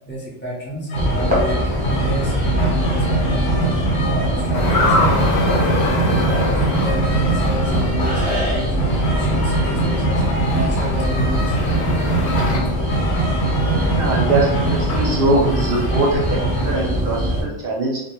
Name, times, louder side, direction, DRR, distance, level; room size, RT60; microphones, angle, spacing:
voice 1, 0.1-11.9, right 1 dB, 20° left, -6 dB, 0.3 m, -30 dB
sound 1, 0.9-16.7, right 2 dB, 90° left, 1.0 m, -24 dB
sound 2, 0.9-17.4, equal, 10° right, 0.7 m, -22 dB
sound 3, 4.5-7.9 10.6-12.6, left 1 dB, 65° left, 0.8 m, -24 dB
voice 2, 13.9-18.0, right 2 dB, 60° right, -3 dB, 0.6 m, -22 dB
2.1 x 2.1 x 2.9 m, 0.80 s
omnidirectional pair, 1.3 m